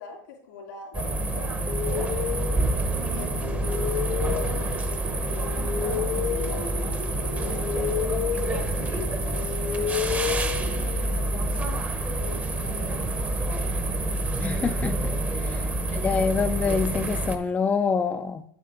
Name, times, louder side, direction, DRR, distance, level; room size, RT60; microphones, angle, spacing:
voice 1, 0.0-2.4 3.1-5.7 6.1-8.0 8.3-10.5 10.8-11.9 12.1-13.9 15.4-16.0, left 5 dB, 85° left, 3.4 m, -43 dB
sound 1, 0.9-17.4, right 2 dB, 15° right, 0.8 m, -27 dB
sound 2, 1.7-11.4, left 10 dB, 45° left, 0.8 m, -32 dB
voice 2, 14.4-15.1 15.4-15.7 15.9-18.4, left 5 dB, 15° left, 0.4 m, -26 dB
8.6 x 7.7 x 3.7 m
supercardioid pair, 130°, 10 cm